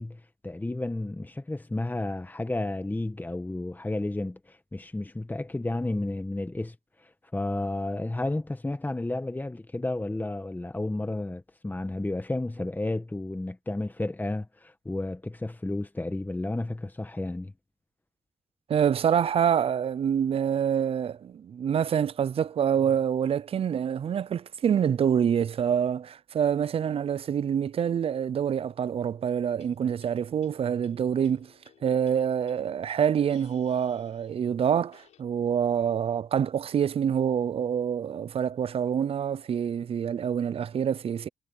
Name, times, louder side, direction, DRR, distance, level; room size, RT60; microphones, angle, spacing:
voice 1, 0.0-17.5, left 2 dB, 15° left, 1.6 m, -32 dB
voice 2, 18.7-31.5 31.8-41.3, right 8 dB, 55° right, 0.5 m, -26 dB
sound 1, 29.3-35.2, left 11 dB, 85° left, 6.8 m, -61 dB
cardioid pair, 60°, 11 cm